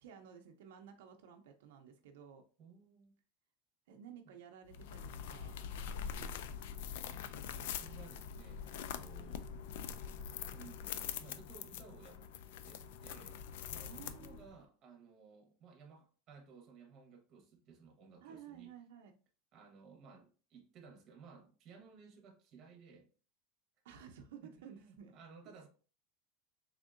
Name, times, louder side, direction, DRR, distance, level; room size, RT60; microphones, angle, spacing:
voice 1, 0.0-2.4 3.9-5.6 6.0-6.4 13.8-14.6 18.2-19.2 23.8-25.2 25.4-25.6, right 8 dB, 80° right, 0.6 m, -54 dB
voice 2, 2.6-3.1 4.2-4.4 5.8-6.0 7.0-9.5 10.5-12.3 12.7-13.4 13.7-18.7 19.5-23.1 24.4-25.7, right 5 dB, 30° right, 1.0 m, -58 dB
sound 1, 4.7-14.6, left 8 dB, 70° left, 0.3 m, -44 dB
3.6 x 3.5 x 2.4 m
supercardioid pair, 170°, 0 cm